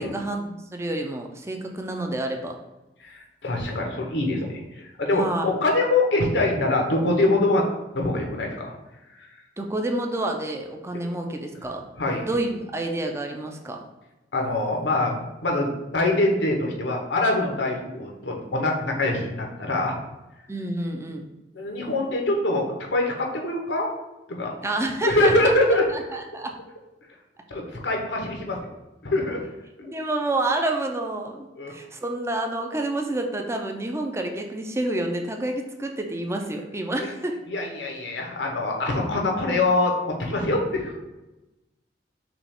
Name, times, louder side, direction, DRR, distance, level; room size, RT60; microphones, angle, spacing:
voice 1, 0.0-2.6 5.1-5.4 9.6-11.8 12.2-13.8 20.5-21.3 24.6-25.5 25.9-26.6 29.8-37.4, right 2 dB, 15° right, 3 dB, 0.5 m, -29 dB
voice 2, 3.0-7.7 7.9-8.7 9.2-9.3 12.0-12.3 14.3-20.0 21.6-23.9 24.3-24.5 25.0-25.9 27.5-28.7 29.0-29.4 29.8-29.9 31.6-31.7 37.0-37.1 37.5-41.0, left 2 dB, 80° left, 1 dB, 0.9 m, -24 dB
6.0 x 2.4 x 3.5 m, 1.0 s
head